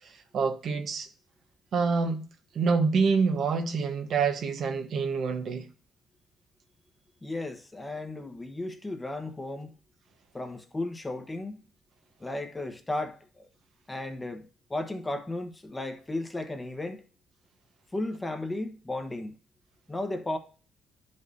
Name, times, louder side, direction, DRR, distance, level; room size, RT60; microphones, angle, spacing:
voice 1, 0.0-1.1 1.7-2.2 2.5-5.7, right 5 dB, 65° right, 1.0 m, -27 dB
voice 2, 7.2-9.7 10.3-11.5 12.2-13.5 13.9-17.0 17.9-19.4 19.9-20.4, left 2 dB, 15° left, 1.2 m, -34 dB
11.0 x 5.4 x 2.6 m
cardioid pair, 90°, 0 cm